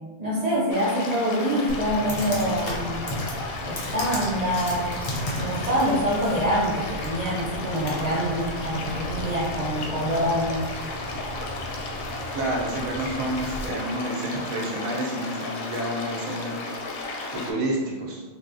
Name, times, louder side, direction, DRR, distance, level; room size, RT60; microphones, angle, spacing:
voice 1, 0.2-3.1 3.6-4.9 5.3-10.6, equal, 50° right, -5 dB, 0.5 m, -25 dB
sound 1, 0.7-17.5, left 3 dB, 85° left, 1.0 m, -34 dB
Computer keyboard, 1.7-13.7, equal, 45° left, 0.6 m, -35 dB
voice 2, 12.3-16.6 16.9-18.2, right 1 dB, 90° right, -3 dB, 1.2 m, -29 dB
3.9 x 2.4 x 2.5 m, 1.3 s
omnidirectional pair, 1.4 m